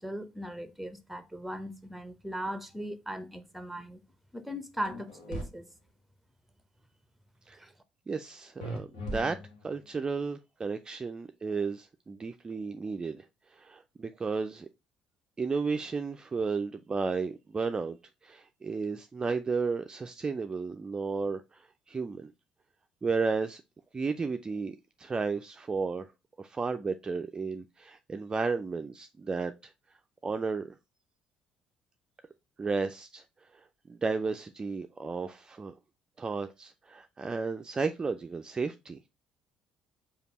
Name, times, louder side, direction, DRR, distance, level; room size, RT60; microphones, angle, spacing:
voice 1, 0.0-4.0 4.3-5.7 7.6-7.7, equal, 5° right, 0.7 m, -38 dB
sound 1, 4.8-5.4 8.6-9.8, equal, 80° left, 1.1 m, -38 dB
voice 2, 8.1-9.4 9.6-13.2 13.5-14.7 15.4-18.0 18.2-22.3 23.0-23.6 23.9-26.1 26.4-29.7 30.2-30.7 32.6-33.2 33.9-35.7 36.2-39.0, right 4 dB, 25° right, 0.4 m, -33 dB
5.1 x 2.3 x 4.0 m
hypercardioid pair, 55°, 3 cm